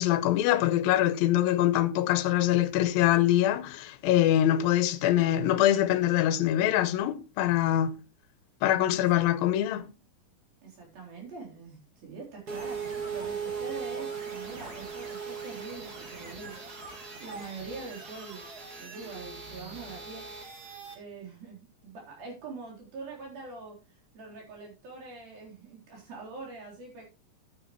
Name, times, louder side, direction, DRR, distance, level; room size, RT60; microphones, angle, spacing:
voice 1, 0.0-8.0 8.6-9.9, left 13 dB, 85° left, 2.6 m, -24 dB
voice 2, 8.9-9.2 10.6-18.5 18.8-20.3 21.0-27.0, right 4 dB, 85° right, 5.6 m, -44 dB
sound 1, 12.5-20.9, right 5 dB, 40° right, 1.6 m, -39 dB
11.5 x 9.1 x 3.1 m
omnidirectional pair, 4.1 m